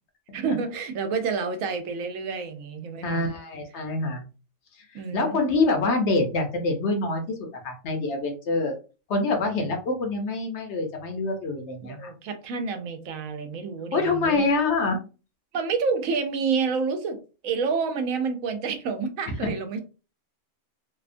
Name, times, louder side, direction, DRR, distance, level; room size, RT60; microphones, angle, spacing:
voice 1, 0.3-3.3 4.9-5.4 11.8-14.5 15.5-19.8, right 5 dB, 80° right, 1.0 m, -29 dB
voice 2, 3.0-4.2 4.9-8.8 9.1-12.1 13.9-15.0, left 3 dB, 65° left, 0.9 m, -26 dB
2.7 x 2.2 x 2.5 m
omnidirectional pair, 1.4 m